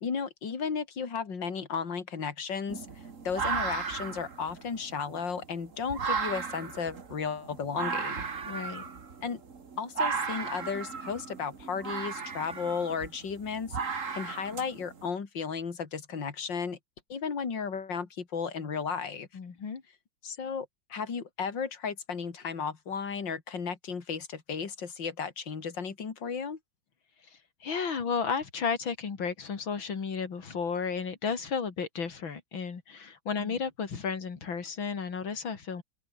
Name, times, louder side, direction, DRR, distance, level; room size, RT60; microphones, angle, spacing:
voice 1, 0.0-2.9 3.2-8.2 9.2-9.4 9.8-16.8 17.1-19.3 20.2-26.6 33.4-33.5, left 6 dB, 70° left, 3.4 m, -34 dB
sound 1, 2.7-15.1, right 5 dB, 40° right, 2.2 m, -35 dB
voice 2, 8.5-8.9 19.3-19.8 27.3-35.8, left 5 dB, 90° left, 3.4 m, -33 dB
omnidirectional pair, 2.1 m